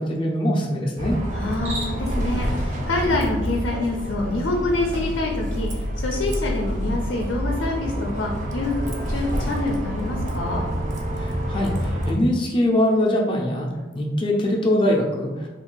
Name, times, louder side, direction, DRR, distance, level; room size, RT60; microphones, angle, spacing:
voice 1, 0.0-1.2 11.1-13.7 13.9-15.5, left 1 dB, 25° left, -1 dB, 0.4 m, -22 dB
Bus, 1.0-12.1, equal, 40° right, 0.5 m, -27 dB
voice 2, 1.3-10.7, left 2 dB, 90° left, 0 dB, 0.4 m, -26 dB
Cricket, 1.5-2.2, right 1 dB, 80° right, 0.9 m, -34 dB
2.6 x 2.4 x 3.7 m, 1.2 s
head